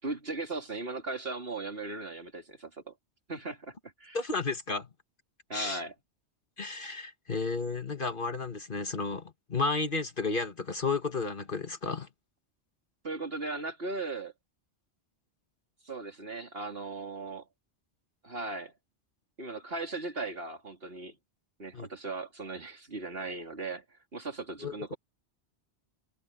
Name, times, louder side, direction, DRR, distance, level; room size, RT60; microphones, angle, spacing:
voice 1, 0.0-2.9 3.3-4.2 5.5-5.9 13.0-14.3 15.8-17.5 18.2-18.7 19.4-21.2 21.6-23.8 24.1-25.0, right 3 dB, 60° right, 3.7 m, -38 dB
voice 2, 4.1-4.9 5.5-5.8 6.6-12.1 21.7-21.9 24.6-24.9, left 4 dB, 50° left, 1.9 m, -32 dB
omnidirectional pair, 1.1 m